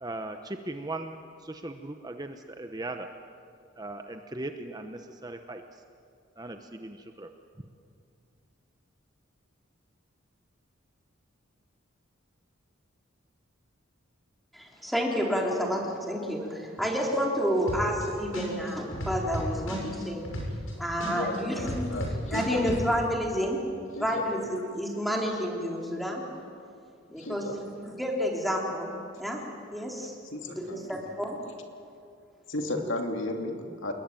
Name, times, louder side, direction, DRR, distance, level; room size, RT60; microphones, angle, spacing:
voice 1, 0.0-3.1 3.8-5.6 6.4-7.3, right 2 dB, 20° right, 6 dB, 1.0 m, -38 dB
voice 2, 14.5-20.2 20.8-22.0 22.3-23.6 24.0-26.3 27.1-28.9 29.2-29.4 29.7-30.2 30.5-31.4, equal, ahead, -1 dB, 3.7 m, -30 dB
sound 1, 17.7-18.0 18.3-20.7 21.0-22.8, equal, 85° left, 7.4 m, -33 dB
voice 3, 21.1-22.7 23.9-24.3 27.1-27.6 30.3-30.9 32.5-33.9, left 2 dB, 70° left, 3 dB, 2.7 m, -34 dB
28.0 x 21.5 x 9.1 m, 2.4 s
head